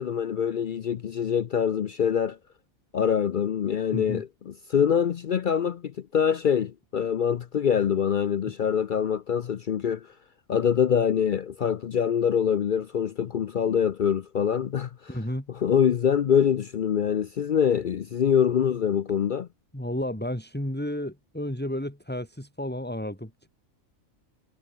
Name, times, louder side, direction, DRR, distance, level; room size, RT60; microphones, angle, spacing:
voice 1, 0.0-2.4 2.9-10.1 10.5-15.2 15.5-19.5, left 8 dB, 60° left, 0.5 m, -24 dB
voice 2, 3.9-4.2 15.1-15.5 19.7-23.5, left 1 dB, 5° left, 3.8 m, -32 dB
omnidirectional pair, 1.4 m